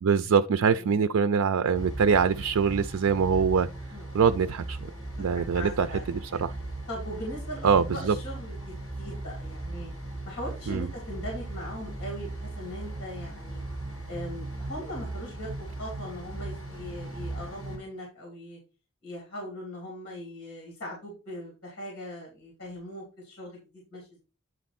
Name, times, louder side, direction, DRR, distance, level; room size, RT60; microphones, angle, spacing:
voice 1, 0.0-3.7 4.1-4.9 5.2-5.9 6.2-6.5 7.6-8.2 10.7-10.9, right 6 dB, 80° right, 0.4 m, -24 dB
sound 1, 1.7-17.8, right 2 dB, 20° left, 4.8 m, -38 dB
voice 2, 5.5-6.4 6.9-9.9 10.2-13.6 14.1-18.6 19.0-24.3, equal, 50° left, 3.4 m, -40 dB
9.7 x 4.1 x 4.2 m
head